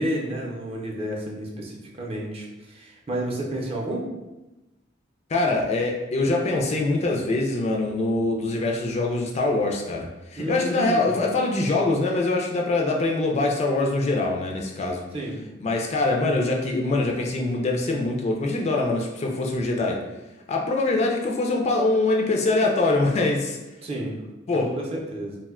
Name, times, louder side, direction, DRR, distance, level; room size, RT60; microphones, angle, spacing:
voice 1, 0.0-4.1 10.4-11.2 15.1-15.4 23.8-24.2 24.7-25.4, right 1 dB, 30° right, -1 dB, 0.5 m, -31 dB
voice 2, 5.3-15.0 15.6-20.0 20.5-23.6 24.5-24.8, left 2 dB, 35° left, 0 dB, 0.3 m, -23 dB
2.5 x 2.1 x 3.5 m, 1.0 s
head